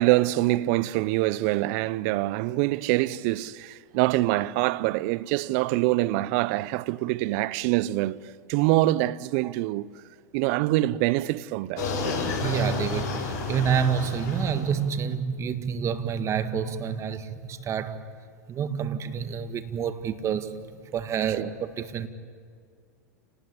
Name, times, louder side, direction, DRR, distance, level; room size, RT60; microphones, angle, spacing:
voice 1, 0.0-9.9 10.3-11.9 21.4-21.5, right 17 dB, 55° right, 0.8 m, -25 dB
sound 1, 11.8-14.8, left 4 dB, 55° left, 7.4 m, -31 dB
voice 2, 12.4-18.0 18.5-20.6 20.9-22.1, right 7 dB, 30° right, 1.9 m, -28 dB
29.0 x 19.5 x 9.8 m
hypercardioid pair, 100°, 9 cm